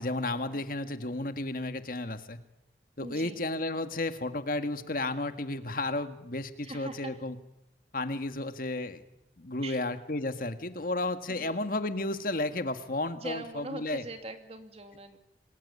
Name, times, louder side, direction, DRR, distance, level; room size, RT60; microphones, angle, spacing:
voice 1, 0.0-2.4 3.0-7.4 7.9-9.0 9.4-14.0, left 2 dB, 50° left, 9 dB, 1.8 m, -33 dB
voice 2, 3.0-3.4 6.6-7.2 9.6-9.8 11.3-11.6 13.1-15.2, right 2 dB, 35° right, 6 dB, 2.7 m, -42 dB
27.0 x 21.5 x 9.7 m, 0.88 s
head